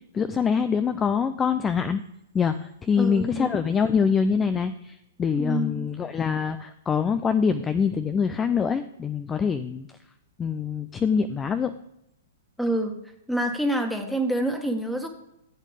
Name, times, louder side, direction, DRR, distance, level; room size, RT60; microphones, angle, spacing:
voice 1, 0.1-2.0 2.3-9.9 10.4-11.7, left 6 dB, 20° left, 10 dB, 0.5 m, -24 dB
voice 2, 3.0-3.6 5.3-5.9 12.6-12.9 13.3-15.1, right 1 dB, ahead, 4 dB, 1.7 m, -27 dB
14.5 x 8.3 x 3.4 m, 0.80 s
hypercardioid pair, 115°, 0 cm